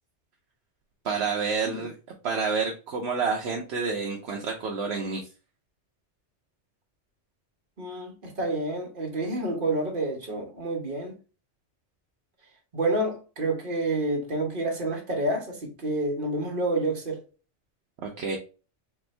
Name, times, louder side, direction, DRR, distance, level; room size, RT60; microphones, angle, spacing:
voice 1, 1.0-1.9 2.2-5.3 18.0-18.4, right 5 dB, 65° right, 1.0 m, -29 dB
voice 2, 7.8-11.1 12.7-17.2, right 2 dB, 45° right, 1.3 m, -29 dB
4.3 x 2.6 x 3.2 m
omnidirectional pair, 1.2 m